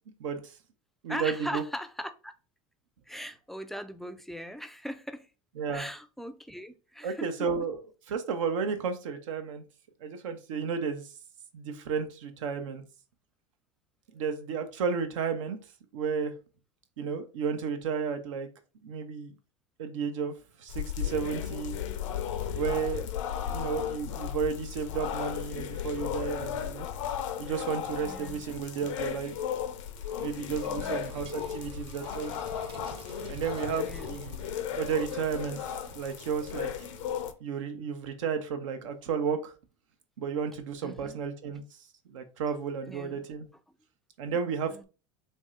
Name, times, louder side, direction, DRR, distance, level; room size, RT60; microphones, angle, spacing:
voice 1, 0.2-0.5 1.0-1.6 5.6-5.8 7.0-7.8 8.1-9.6 10.0-11.1 11.5-12.8 14.1-15.6 15.9-16.3 17.0-18.5 18.8-19.3 19.8-20.3 20.6-21.8 22.5-23.0 23.5-26.9 27.4-29.3 30.2-32.3 33.3-34.4 34.8-35.6 35.9-36.7 37.0-37.1 37.4-39.5 40.2-41.6 42.1-43.4 44.2-44.8, right 6 dB, 85° right, 0.8 m, -32 dB
voice 2, 1.1-2.3 3.1-5.3 5.7-7.3 28.0-28.4 30.7-31.1 33.8-34.2 40.8-41.2 42.9-43.3 44.7-44.8, equal, ahead, 0.4 m, -40 dB
sound 1, 20.7-37.3, left 9 dB, 85° left, 0.5 m, -35 dB
sound 2, 29.9-37.4, right 4 dB, 35° right, 0.6 m, -48 dB
3.2 x 2.7 x 3.6 m
supercardioid pair, 100°, 16 cm